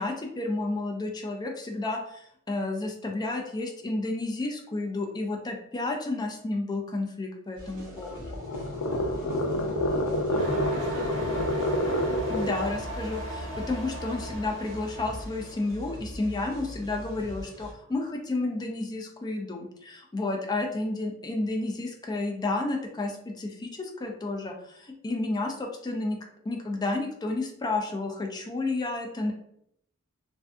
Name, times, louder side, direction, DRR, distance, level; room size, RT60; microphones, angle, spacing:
voice 1, 0.0-8.4 12.3-26.2 26.4-29.3, left 2 dB, 20° left, 2 dB, 0.3 m, -31 dB
sound 1, 7.5-17.7, equal, 45° right, 0.8 m, -42 dB
sound 2, 7.8-12.7, left 1 dB, 80° left, 0.4 m, -28 dB
sound 3, 10.3-15.7, equal, 75° right, 1.0 m, -37 dB
voice 2, 10.3-11.3 11.6-12.2, right 3 dB, 90° right, 3 dB, 0.4 m, -43 dB
2.5 x 2.4 x 2.2 m, 0.72 s
head